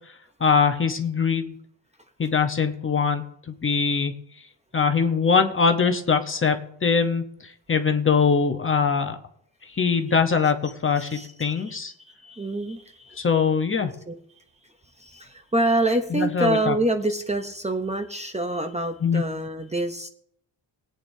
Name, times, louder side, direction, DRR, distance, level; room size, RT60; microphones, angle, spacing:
voice 1, 0.4-1.6 2.2-4.1 4.7-9.2 9.8-11.9 13.2-13.9 16.1-16.8 19.0-19.2, left 5 dB, 30° left, 6 dB, 0.9 m, -22 dB
voice 2, 11.0-11.8 12.0-13.2 14.1-14.2 15.0-20.1, right 2 dB, 15° right, 5 dB, 0.7 m, -27 dB
21.0 x 8.7 x 2.7 m, 0.67 s
wide cardioid pair, 150°, 44 cm